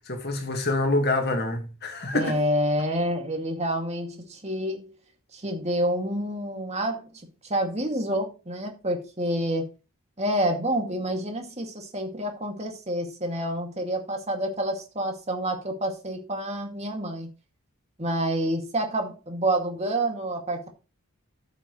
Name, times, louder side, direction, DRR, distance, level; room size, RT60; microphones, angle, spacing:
voice 1, 0.1-2.4, left 2 dB, 45° left, 1.8 m, -26 dB
voice 2, 2.1-4.9 5.3-7.0 7.5-9.7 10.2-17.3 18.0-20.7, right 1 dB, 30° right, 2.2 m, -28 dB
14.0 x 7.0 x 3.1 m
head